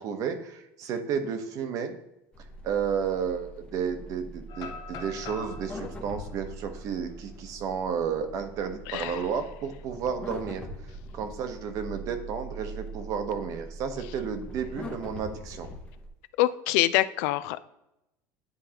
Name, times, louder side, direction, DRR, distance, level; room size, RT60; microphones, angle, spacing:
voice 1, 0.0-2.0 2.6-10.7 11.1-15.7, right 7 dB, 45° right, 8 dB, 0.8 m, -32 dB
sound 1, 2.3-16.1, right 1 dB, 15° left, 0.7 m, -42 dB
sound 2, 4.5-8.4 8.8-8.9 9.4-9.7 11.1-11.9, left 5 dB, 45° left, 0.8 m, -45 dB
voice 2, 8.9-9.2 16.4-17.6, left 16 dB, 75° left, 15 dB, 0.4 m, -25 dB
9.6 x 3.8 x 2.9 m, 0.87 s
cardioid pair, 160°, 8 cm